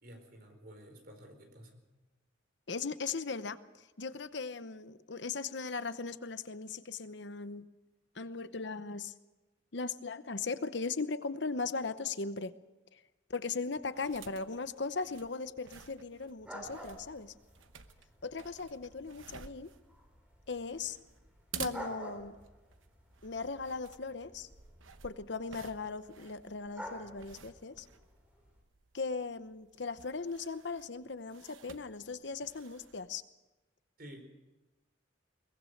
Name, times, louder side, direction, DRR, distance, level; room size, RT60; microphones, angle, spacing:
voice 1, 0.0-1.8 34.0-34.3, equal, 50° right, 5 dB, 4.4 m, -51 dB
voice 2, 2.7-7.7 8.1-9.1 9.7-12.5 12.9-13.0 13.3-17.3 18.2-19.7 20.5-21.0 21.6-22.4 23.2-24.5 25.0-27.9 28.9-33.2, left 4 dB, 65° left, 12 dB, 0.9 m, -38 dB
sound 1, 13.8-33.1, right 7 dB, 80° right, 1.0 m, -52 dB
sound 2, 16.4-28.6, right 1 dB, 5° right, 4.2 m, -51 dB
22.5 x 19.5 x 6.6 m, 1.1 s
head